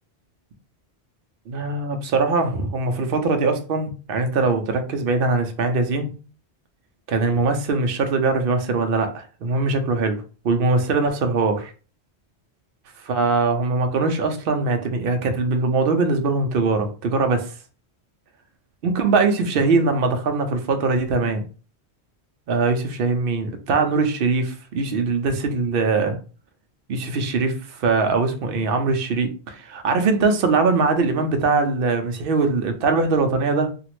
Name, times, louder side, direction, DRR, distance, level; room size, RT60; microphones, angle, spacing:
voice 1, 1.5-6.1 7.1-11.7 13.0-17.5 18.8-21.4 22.5-26.2 26.9-33.7, right 3 dB, 65° right, 0.7 m, -22 dB
2.9 x 2.4 x 2.9 m
omnidirectional pair, 1.1 m